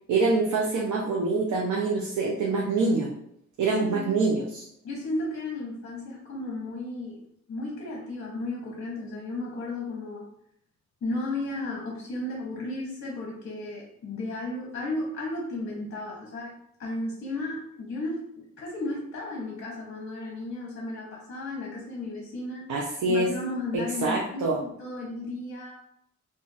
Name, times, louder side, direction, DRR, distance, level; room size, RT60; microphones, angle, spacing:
voice 1, 0.1-3.1 3.6-4.6 22.7-23.3 24.0-24.6, right 3 dB, 80° right, -2 dB, 0.6 m, -25 dB
voice 2, 3.8-4.2 4.8-7.2 7.5-10.3 11.0-22.6 23.1-25.7, left 2 dB, 45° left, -3 dB, 0.8 m, -34 dB
2.4 x 2.4 x 3.9 m, 0.72 s
wide cardioid pair, 155°, 29 cm